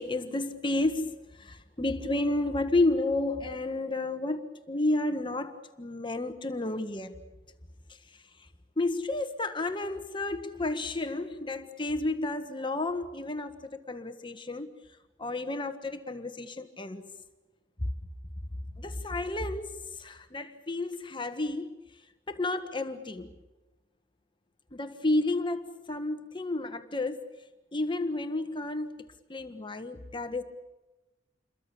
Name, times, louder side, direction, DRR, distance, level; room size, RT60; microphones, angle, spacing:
voice 1, 0.0-7.1 8.8-14.7 15.2-17.1 17.8-17.9 18.8-19.7 20.0-21.7 22.3-23.3 24.7-27.2 27.7-28.9 29.3-30.4, left 2 dB, 25° left, 7 dB, 1.5 m, -31 dB
28.5 x 23.0 x 7.0 m, 1.1 s
head